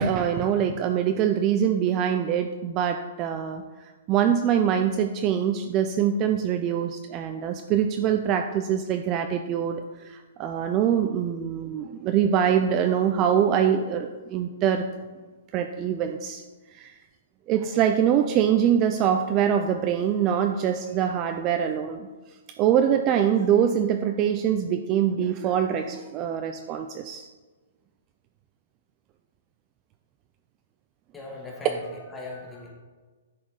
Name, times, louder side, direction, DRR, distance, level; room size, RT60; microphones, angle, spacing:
voice 1, 0.0-3.6 4.1-14.9 15.5-16.4 16.7-16.9 17.5-22.1 22.6-27.3, right 9 dB, 25° right, 6 dB, 0.4 m, -24 dB
voice 2, 31.1-32.7, left 2 dB, 10° left, -2 dB, 1.7 m, -39 dB
10.0 x 4.2 x 4.8 m, 1.3 s
hypercardioid pair, 155°, 0 cm